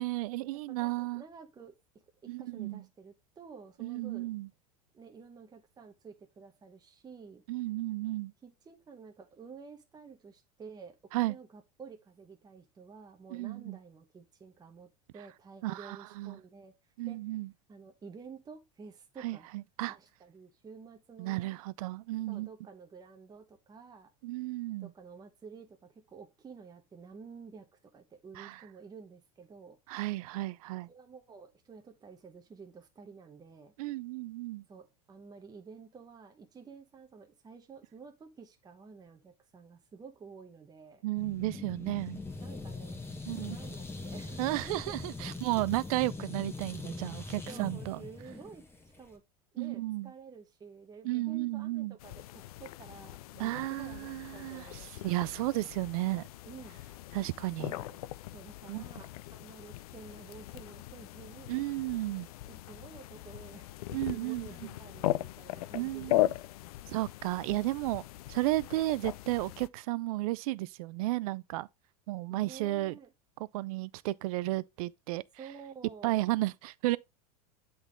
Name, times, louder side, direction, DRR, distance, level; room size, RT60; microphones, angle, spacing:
voice 1, 0.0-1.2 2.3-2.8 3.8-4.5 7.5-8.3 11.1-11.4 13.3-13.8 15.6-16.4 17.0-17.5 19.2-20.0 21.2-22.5 24.2-24.9 28.4-28.6 29.9-30.9 33.8-34.6 41.0-42.2 43.3-43.6 44.4-48.0 49.6-50.1 51.0-52.0 53.4-54.7 55.0-56.2 57.1-57.7 58.7-58.8 61.5-62.3 63.9-64.7 65.7-66.3 66.9-68.0 68.3-71.7 72.1-72.9 73.5-75.2 76.0-77.0, right 18 dB, 70° right, 0.4 m, -33 dB
voice 2, 0.5-1.8 2.2-4.3 4.9-7.4 8.4-16.7 17.1-17.2 17.7-19.5 19.9-21.6 22.3-24.1 24.8-29.8 30.9-33.7 34.7-41.0 42.4-44.9 45.2-45.7 47.4-48.7 49.0-49.2 49.5-55.3 56.4-56.8 57.6-58.0 58.3-61.6 62.1-66.2 66.8-67.0 67.5-67.6 72.3-73.1 75.4-76.2, right 5 dB, 20° right, 1.0 m, -51 dB
sound 1, 41.2-49.2, left 3 dB, 10° left, 1.2 m, -42 dB
sound 2, 52.0-69.7, left 15 dB, 70° left, 0.4 m, -38 dB
8.0 x 3.9 x 3.7 m
hypercardioid pair, 100°, 19 cm